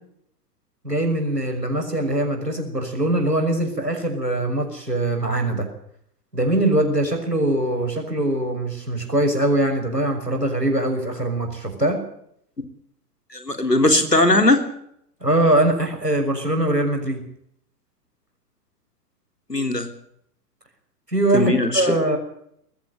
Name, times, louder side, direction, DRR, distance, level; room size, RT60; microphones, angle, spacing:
voice 1, 0.8-5.7 6.3-12.0 15.2-17.2 21.1-22.2, right 1 dB, 90° right, 4 dB, 6.3 m, -22 dB
voice 2, 13.3-14.7 19.5-19.9 21.3-21.9, left 2 dB, 90° left, 7 dB, 3.5 m, -19 dB
20.5 x 16.0 x 9.1 m, 0.71 s
figure-of-eight pair, 110°, 47 cm